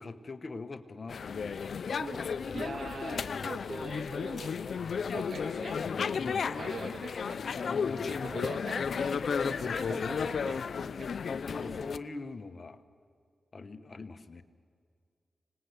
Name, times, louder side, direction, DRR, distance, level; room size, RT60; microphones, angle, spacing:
voice 1, 0.0-1.6 2.4-2.7 6.2-6.6 7.6-8.1 9.9-10.6 11.5-12.8 13.5-14.4, left 3 dB, 45° left, 10 dB, 1.2 m, -43 dB
sound 1, 1.1-12.0, left 6 dB, 75° left, 0.6 m, -33 dB
voice 2, 2.5-4.5 5.1-5.8 6.6-7.4 8.0-10.6 11.0-11.1, right 4 dB, 70° right, 7 dB, 1.8 m, -43 dB
25.5 x 19.5 x 8.2 m, 2.2 s
cardioid pair, 60°, 0 cm